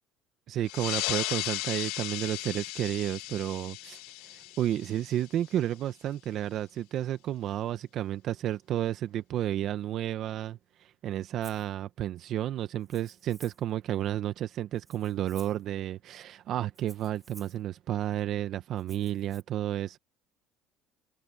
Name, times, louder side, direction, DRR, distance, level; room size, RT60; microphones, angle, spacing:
voice 1, 0.5-20.0, right 12 dB, 55° right, 1.0 m, -32 dB
sound 1, 0.7-5.7, left 19 dB, 85° left, 1.2 m, -36 dB
Rattle (instrument), 11.4-11.7 12.8-13.7 14.7-15.7 16.7-17.6 18.8-19.4, right 3 dB, 15° right, 6.3 m, -54 dB
cardioid pair, 110°, 0 cm